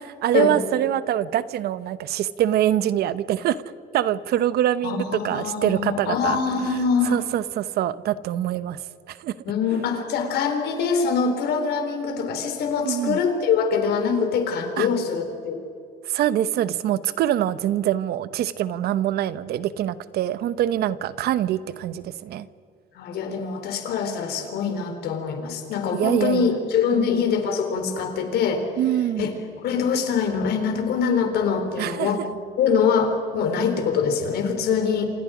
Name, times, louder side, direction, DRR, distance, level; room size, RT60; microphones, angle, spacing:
voice 1, 0.2-3.6 3.9-6.4 7.0-8.8 9.1-9.4 12.8-13.2 14.8-14.9 16.0-22.5 24.8-24.9 25.9-26.5 27.0-27.1 28.8-29.3 31.8-32.1, right 12 dB, 70° right, 15 dB, 0.9 m, -24 dB
voice 2, 4.8-7.2 9.4-15.6 22.9-28.6 29.2-29.3 29.6-32.2 32.6-35.1, left 6 dB, 75° left, 6 dB, 4.0 m, -24 dB
29.0 x 26.5 x 5.1 m, 2.5 s
cardioid pair, 110°, 17 cm